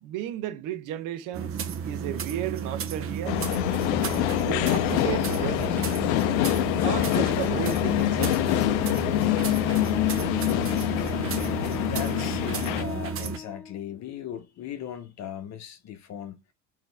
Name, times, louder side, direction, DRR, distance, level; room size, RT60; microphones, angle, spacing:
voice 1, 0.0-3.4 4.5-5.8 6.8-8.4, right 11 dB, 65° right, 0.8 m, -34 dB
sound 1, 1.3-13.4, right 7 dB, 40° right, 0.8 m, -33 dB
sound 2, 3.3-12.8, left 17 dB, 80° left, 0.5 m, -25 dB
Wind instrument woodwind instrument, 9.7-13.9, left 6 dB, 5° left, 0.5 m, -40 dB
voice 2, 11.8-16.3, left 9 dB, 50° left, 0.9 m, -38 dB
4.0 x 2.9 x 3.4 m
supercardioid pair, 85°, 35 cm